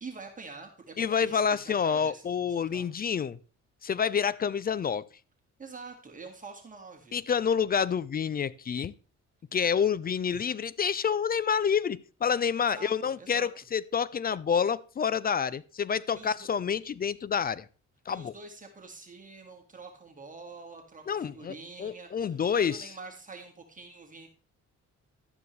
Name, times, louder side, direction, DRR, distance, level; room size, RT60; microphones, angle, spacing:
voice 1, 0.0-2.9 5.6-7.2 12.7-13.5 16.1-16.5 18.1-24.3, right 4 dB, 25° right, 2.0 m, -46 dB
voice 2, 1.0-3.4 3.8-5.0 7.1-8.9 9.5-17.7 18.1-18.3 21.1-21.5 21.8-22.9, left 7 dB, 30° left, 0.4 m, -28 dB
12.0 x 9.4 x 3.2 m
cardioid pair, 90°, 30 cm